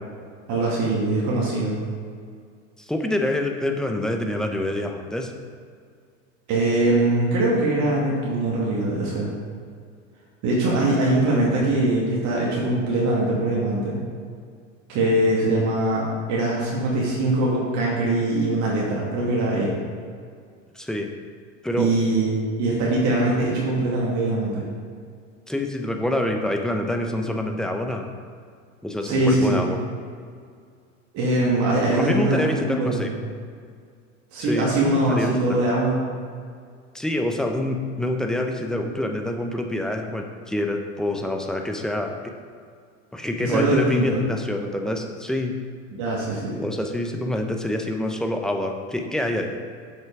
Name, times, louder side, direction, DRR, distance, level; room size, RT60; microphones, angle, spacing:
voice 1, 0.5-1.8 6.5-9.3 10.4-14.0 14.9-19.8 21.8-22.3 22.6-24.7 29.0-29.6 31.1-32.5 32.8-33.1 34.3-36.0 43.4-44.2 46.0-46.6, right 2 dB, 45° right, -5 dB, 2.3 m, -22 dB
voice 2, 2.9-5.3 10.8-10.9 15.5-15.6 20.7-21.1 21.6-21.9 25.5-28.1 28.8-29.8 31.9-33.1 34.4-35.6 36.9-42.3 43.1-45.6 46.6-49.6, left 1 dB, ahead, 3 dB, 0.9 m, -26 dB
7.5 x 6.3 x 4.8 m, 2.1 s
hypercardioid pair, 95°, 39 cm